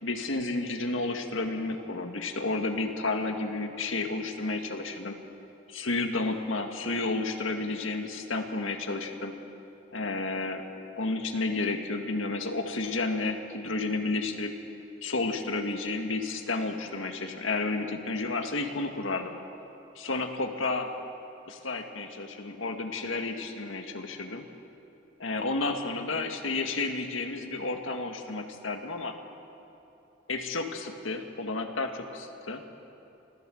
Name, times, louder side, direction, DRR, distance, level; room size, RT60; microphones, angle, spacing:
voice 1, 0.0-5.2 5.7-9.3 9.9-10.6 11.0-14.5 15.0-19.3 20.0-20.9 21.5-24.4 25.2-29.2 30.3-32.6, left 3 dB, 90° left, 5 dB, 1.9 m, -31 dB
24.5 x 15.5 x 7.8 m, 2.8 s
head